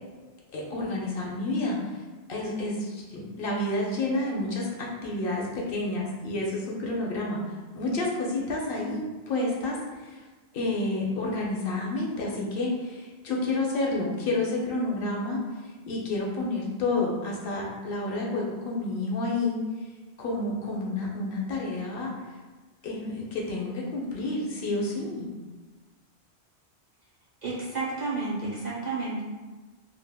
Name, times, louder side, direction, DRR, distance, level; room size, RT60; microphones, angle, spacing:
voice 1, 0.5-1.9 2.3-7.4 7.7-9.8 10.0-10.2 10.5-15.4 15.9-19.6 20.2-22.1 22.8-25.3, left 2 dB, 65° left, -2 dB, 0.7 m, -29 dB
voice 2, 27.4-29.2, right 3 dB, 55° right, -6 dB, 0.5 m, -31 dB
2.1 x 2.0 x 3.3 m, 1.3 s
omnidirectional pair, 1.1 m